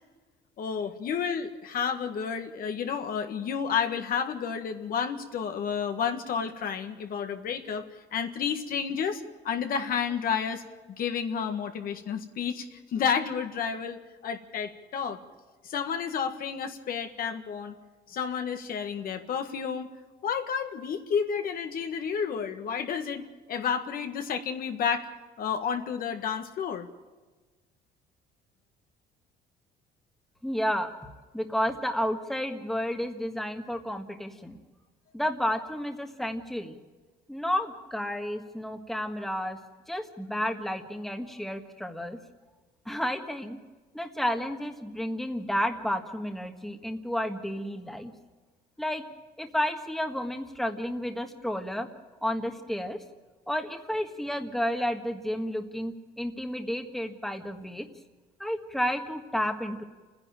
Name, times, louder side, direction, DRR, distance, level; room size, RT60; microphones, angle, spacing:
voice 1, 0.6-10.6 11.0-15.2 15.6-17.7 18.1-19.9 20.2-25.1 25.4-26.9, left 7 dB, 60° left, 6 dB, 1.7 m, -31 dB
voice 2, 30.4-30.9 31.3-34.6 35.1-36.8 37.3-39.6 39.9-42.2 42.8-43.6 43.9-48.1 48.8-49.0 49.4-51.9 52.2-53.0 53.5-57.9 58.4-59.8, equal, ahead, 5 dB, 1.6 m, -31 dB
28.5 x 10.5 x 8.9 m, 1.3 s
cardioid pair, 110°, 17 cm